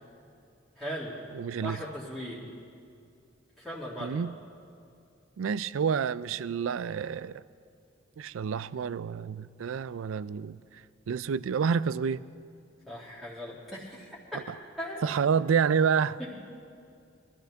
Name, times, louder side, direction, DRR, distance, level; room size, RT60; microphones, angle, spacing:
voice 1, 0.8-1.2 1.6-2.5 3.6-4.2 12.9-14.2 14.8-15.1 16.2-16.4, equal, ahead, 1.9 m, -38 dB
voice 2, 1.3-1.8 4.0-4.3 5.4-7.4 8.2-10.6 11.1-12.2 15.0-16.2, right 6 dB, 75° right, 0.4 m, -28 dB
23.0 x 13.0 x 3.5 m
head